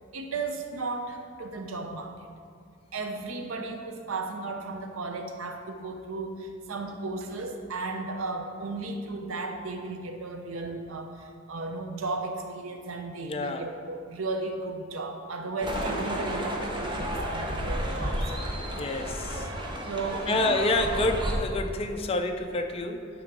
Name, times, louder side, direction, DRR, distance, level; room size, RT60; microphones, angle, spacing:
voice 1, 0.1-2.1 2.9-18.2 19.8-20.6, right 3 dB, 85° right, 4 dB, 0.7 m, -35 dB
voice 2, 13.2-13.7 18.8-19.5 20.3-23.1, left 2 dB, 30° left, 4 dB, 0.5 m, -28 dB
sound 1, 15.6-21.4, equal, 25° right, 0.8 m, -31 dB
9.8 x 3.8 x 6.0 m, 2.2 s
head